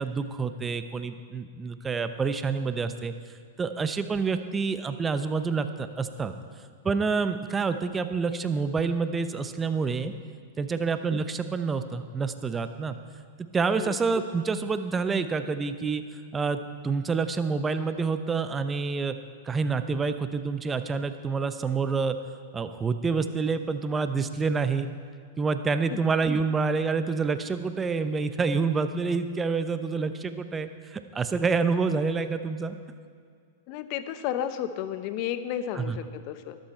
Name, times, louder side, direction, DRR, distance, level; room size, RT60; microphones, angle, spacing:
voice 1, 0.0-3.1 3.6-6.3 6.8-10.1 10.6-13.0 13.5-16.0 16.3-19.2 19.4-22.2 22.5-24.9 25.4-32.8 35.7-36.0, right 4 dB, 15° right, 10 dB, 0.7 m, -27 dB
voice 2, 33.7-36.6, left 10 dB, 50° left, 11 dB, 0.8 m, -32 dB
13.0 x 12.0 x 4.4 m, 2.1 s
hypercardioid pair, 120°, 0 cm